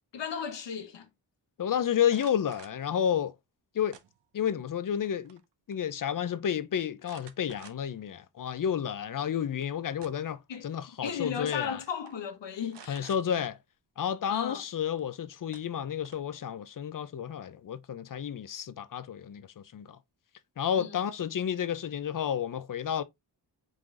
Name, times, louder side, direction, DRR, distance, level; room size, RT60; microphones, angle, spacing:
voice 1, 0.1-1.1 10.5-10.6 11.0-13.1 14.3-14.6 20.7-21.0, left 7 dB, 75° left, 1.0 m, -35 dB
voice 2, 1.6-3.3 3.7-4.0 4.3-5.4 5.7-11.8 12.9-13.6 14.0-20.0 20.6-23.0, left 9 dB, 50° left, 0.5 m, -31 dB
sound 1, 2.0-2.8 3.9-4.5 4.9-5.5 5.7-5.8 7.0-8.0 8.6-8.7 9.7-10.4 11.4-11.6 11.9-12.1 12.7-13.2 15.0-15.1 15.5-16.4, right 8 dB, 75° right, 0.7 m, -53 dB
4.8 x 3.7 x 2.5 m
wide cardioid pair, 145°, 43 cm